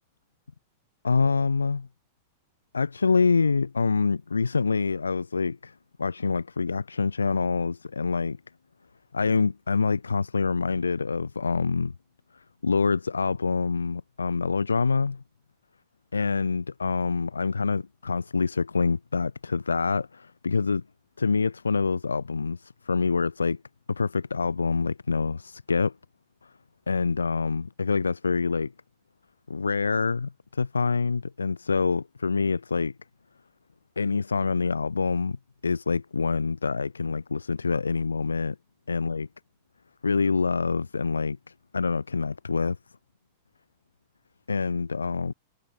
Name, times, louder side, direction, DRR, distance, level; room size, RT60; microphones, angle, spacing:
voice 1, 1.0-1.9 2.7-8.4 9.1-11.9 12.6-15.2 16.1-20.8 21.2-23.6 23.9-25.9 26.9-28.7 29.5-32.9 34.0-35.4 35.6-38.6 38.9-39.3 40.0-41.4 41.7-42.8 44.5-45.3, left 4 dB, 80° left, 0.5 m, -26 dB
figure-of-eight pair, 95°, 0 cm